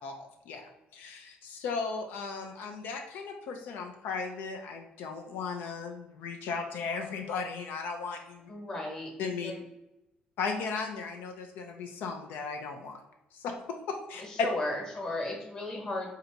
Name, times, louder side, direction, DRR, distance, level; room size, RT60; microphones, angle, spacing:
voice 1, 0.5-8.5 9.2-9.5 10.4-13.0 13.3-14.2, left 5 dB, 85° left, 4 dB, 0.5 m, -36 dB
voice 2, 8.5-9.1 9.4-9.6 14.2-16.1, left 2 dB, 25° left, 0 dB, 1.1 m, -35 dB
3.9 x 2.8 x 4.4 m, 0.90 s
cardioid pair, 165°, 3 cm